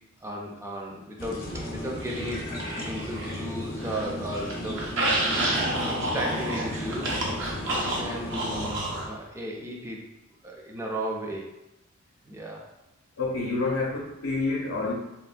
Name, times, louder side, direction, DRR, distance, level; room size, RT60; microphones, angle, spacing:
voice 1, 0.2-2.4 2.9-4.9 5.8-10.1 10.4-11.5 12.2-12.7, equal, 15° right, -1 dB, 0.4 m, -35 dB
sound 1, 1.2-8.7, left 1 dB, 40° left, 0.6 m, -35 dB
sound 2, 2.1-3.4 3.7-9.1, right 1 dB, 60° right, 0.6 m, -30 dB
voice 2, 13.2-14.9, left 3 dB, 85° left, -4 dB, 0.6 m, -28 dB
3.3 x 2.1 x 2.4 m, 0.93 s
head